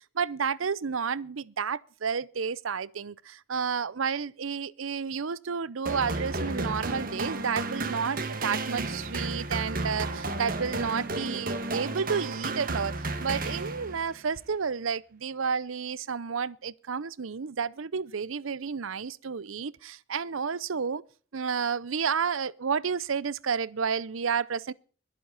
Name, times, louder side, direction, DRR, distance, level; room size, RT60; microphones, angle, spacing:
voice 1, 0.0-21.0 21.3-24.7, right 6 dB, 80° right, 0.7 m, -31 dB
sound 1, 5.9-14.2, right 2 dB, 45° right, 1.8 m, -33 dB
22.5 x 8.4 x 4.1 m
head